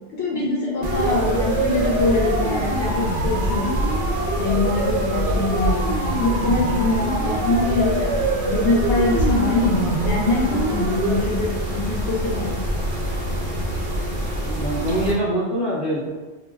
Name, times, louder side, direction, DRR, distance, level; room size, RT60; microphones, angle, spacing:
voice 1, 0.1-3.7 4.4-12.6, left 3 dB, 75° left, -4 dB, 0.9 m, -24 dB
Mechanisms, 0.8-15.1, equal, 55° right, 0.6 m, -26 dB
Siren, 0.8-11.2, right 2 dB, 85° right, 0.9 m, -26 dB
voice 2, 14.4-16.1, right 1 dB, 45° left, -10 dB, 0.8 m, -24 dB
2.4 x 2.0 x 3.3 m, 1.2 s
omnidirectional pair, 1.2 m